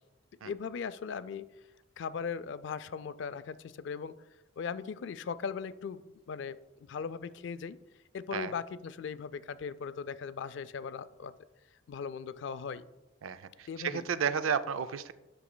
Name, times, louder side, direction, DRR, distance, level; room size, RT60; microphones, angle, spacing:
voice 1, 0.4-1.5 2.0-4.1 4.6-6.6 6.9-7.8 8.1-11.3 11.9-12.8 13.7-14.0, left 6 dB, 60° left, 14 dB, 0.3 m, -38 dB
voice 2, 13.2-15.1, right 7 dB, 85° right, 13 dB, 0.4 m, -32 dB
11.0 x 6.0 x 2.2 m, 1.0 s
head